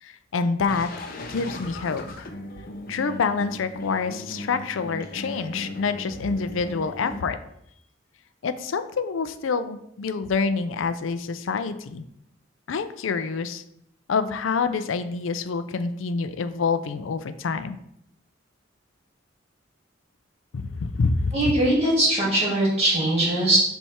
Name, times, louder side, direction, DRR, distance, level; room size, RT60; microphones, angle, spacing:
voice 1, 0.0-2.2 2.9-7.4 8.4-12.0 12.7-13.6 14.1-17.8 20.5-21.7, left 4 dB, 85° left, 11 dB, 0.5 m, -27 dB
sound 1, 0.7-7.2, left 1 dB, 50° left, 0.8 m, -37 dB
voice 2, 21.3-23.6, right 1 dB, 35° right, -5 dB, 2.6 m, -21 dB
7.1 x 3.4 x 4.4 m, 0.75 s
head